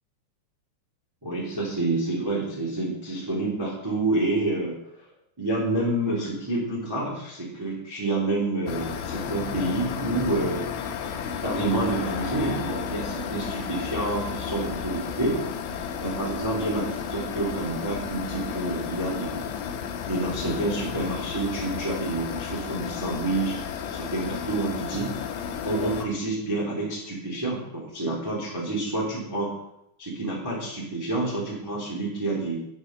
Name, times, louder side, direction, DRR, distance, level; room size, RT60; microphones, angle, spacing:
voice 1, 1.2-4.8 5.4-10.6 11.4-15.4 16.0-19.4 20.1-23.5 23.9-25.1 25.6-29.5 30.0-32.6, right 2 dB, 10° right, -5 dB, 1.7 m, -28 dB
sound 1, 8.7-26.1, left 7 dB, 75° left, 3.2 m, -33 dB
9.3 x 8.5 x 5.7 m, 0.80 s
omnidirectional pair, 5.7 m